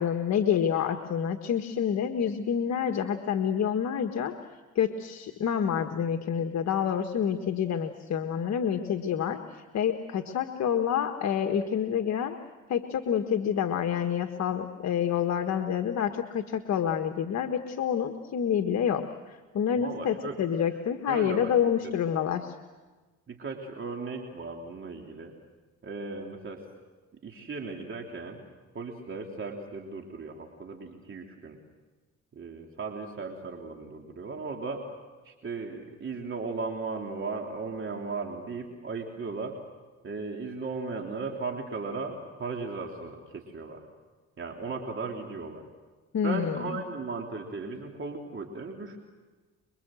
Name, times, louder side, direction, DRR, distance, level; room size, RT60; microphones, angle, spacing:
voice 1, 0.0-4.3 4.7-12.3 12.7-22.5 46.1-46.8, left 8 dB, 65° left, 5 dB, 1.5 m, -28 dB
voice 2, 19.8-20.4 21.1-21.5 23.3-25.3 25.8-26.6 27.2-28.4 28.7-31.6 32.3-34.9 35.2-39.6 40.0-43.8 44.4-45.6 46.2-49.0, right 4 dB, 40° right, 1 dB, 3.3 m, -36 dB
26.5 x 23.5 x 7.7 m, 1.3 s
cardioid pair, 90°, 30 cm